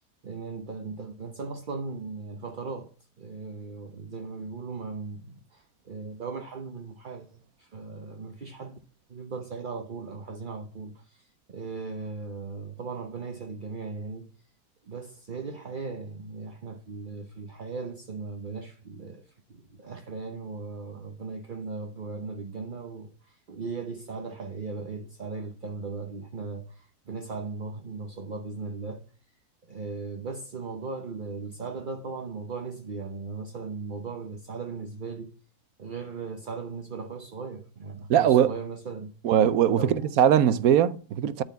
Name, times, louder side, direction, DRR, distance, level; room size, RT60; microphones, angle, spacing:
voice 1, 0.2-2.9 3.2-8.8 9.1-14.3 14.8-29.1 29.7-35.4 35.8-39.1 39.7-40.1, right 4 dB, 40° right, 0.8 m, -38 dB
voice 2, 38.1-38.5 39.2-41.4, right 9 dB, 70° right, 1.0 m, -21 dB
12.5 x 4.2 x 8.2 m
omnidirectional pair, 1.8 m